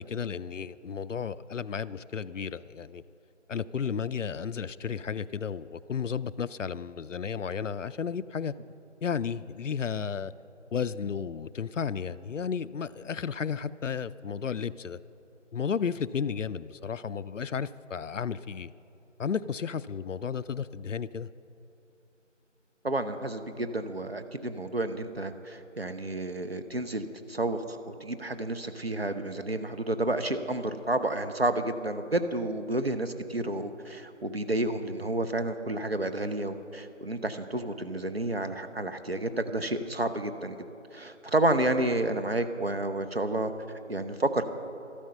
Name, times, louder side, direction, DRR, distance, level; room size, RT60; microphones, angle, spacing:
voice 1, 0.0-3.0 3.5-8.5 9.0-10.3 10.7-15.0 15.5-18.7 19.2-21.3, left 6 dB, 75° left, 16 dB, 0.5 m, -33 dB
voice 2, 22.8-40.6 40.9-43.5 43.9-44.4, right 2 dB, 55° right, 8 dB, 0.8 m, -30 dB
13.0 x 12.0 x 5.6 m, 2.8 s
figure-of-eight pair, 170°, 38 cm